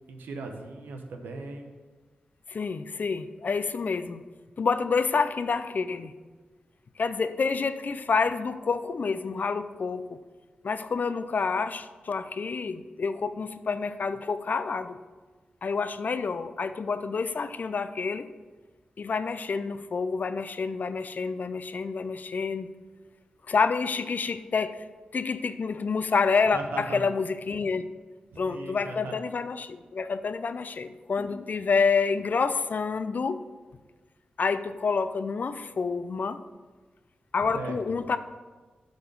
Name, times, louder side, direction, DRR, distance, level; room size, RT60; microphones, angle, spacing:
voice 1, 0.1-1.7 26.5-27.0 28.3-29.1 37.5-37.8, right 3 dB, 90° right, 4 dB, 0.9 m, -38 dB
voice 2, 2.5-4.2 4.6-6.1 7.0-10.2 10.6-15.0 15.6-18.3 19.0-22.7 23.5-24.8 25.1-27.9 28.4-33.4 34.4-36.4 37.3-38.2, left 5 dB, 60° left, 12 dB, 0.5 m, -28 dB
7.9 x 4.1 x 6.9 m, 1.3 s
cardioid pair, 45°, 3 cm